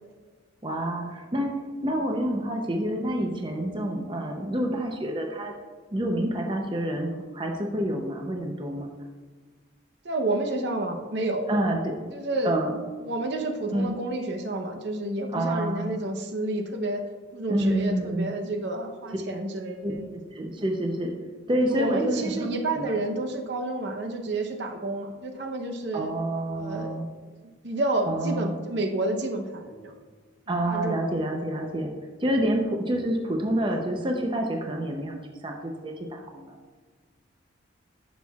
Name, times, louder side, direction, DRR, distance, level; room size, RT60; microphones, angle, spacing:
voice 1, 0.6-1.5 1.8-5.5 5.9-8.9 11.5-12.1 12.4-12.8 13.7-14.0 15.3-16.0 17.5-18.3 19.8-21.1 21.5-22.5 22.7-22.8 25.9-27.1 28.1-28.6 30.5-31.9 32.2-36.6, right 1 dB, 25° right, 2 dB, 0.6 m, -28 dB
voice 2, 10.0-11.5 12.1-12.6 13.0-17.0 17.3-20.0 21.6-26.1 26.5-27.0 27.3-27.4 27.6-29.9 30.6-31.0, right 2 dB, 60° right, 4 dB, 0.8 m, -30 dB
11.0 x 6.2 x 2.4 m, 1.4 s
head